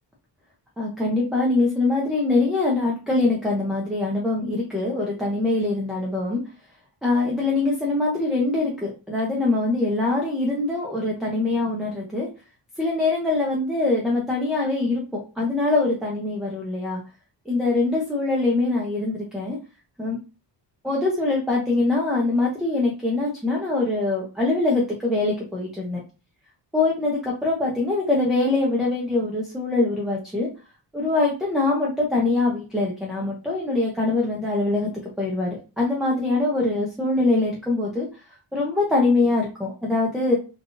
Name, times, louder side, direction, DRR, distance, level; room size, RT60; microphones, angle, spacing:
voice 1, 0.8-6.4 7.0-12.3 12.8-17.0 17.5-19.6 20.0-20.2 20.8-26.0 26.7-30.5 30.9-34.9 35.2-38.1 38.5-40.4, left 2 dB, ahead, -3 dB, 0.6 m, -23 dB
3.3 x 2.4 x 2.5 m, 0.32 s
wide cardioid pair, 145°, 44 cm